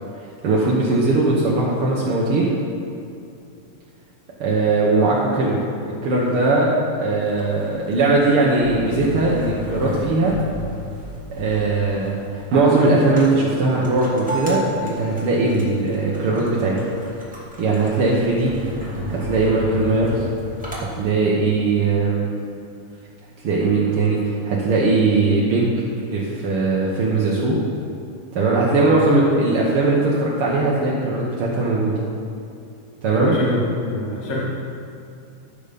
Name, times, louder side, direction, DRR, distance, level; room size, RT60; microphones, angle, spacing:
voice 1, 0.4-2.5 4.4-5.6 6.0-10.4 11.4-16.8 17.6-18.5 19.1-20.2 20.7-22.3 23.4-25.7 26.1-27.6 28.3-31.9 33.0-33.4, right 3 dB, 65° right, -5 dB, 1.4 m, -19 dB
sound 1, 7.1-20.8, equal, 5° right, 1.2 m, -33 dB
voice 2, 33.1-34.4, left 1 dB, 35° left, -5 dB, 1.5 m, -26 dB
12.0 x 6.7 x 5.2 m, 2.5 s
omnidirectional pair, 4.0 m